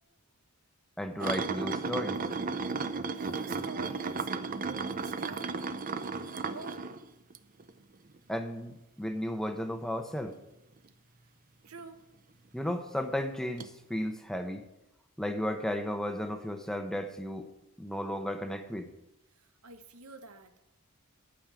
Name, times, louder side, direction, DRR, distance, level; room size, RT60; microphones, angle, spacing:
voice 1, 1.0-2.2 8.3-10.4 12.5-14.6 15.2-17.5 17.8-18.9, left 1 dB, ahead, 6 dB, 0.9 m, -34 dB
sound 1, 1.2-7.7 8.1-8.4 11.8-11.9 13.6-13.7, right 4 dB, 40° right, 0.6 m, -34 dB
voice 2, 3.1-5.7 6.0-6.9 11.6-12.1 19.4-20.7, right 4 dB, 75° right, 8 dB, 1.2 m, -48 dB
12.0 x 5.5 x 8.9 m, 0.92 s
head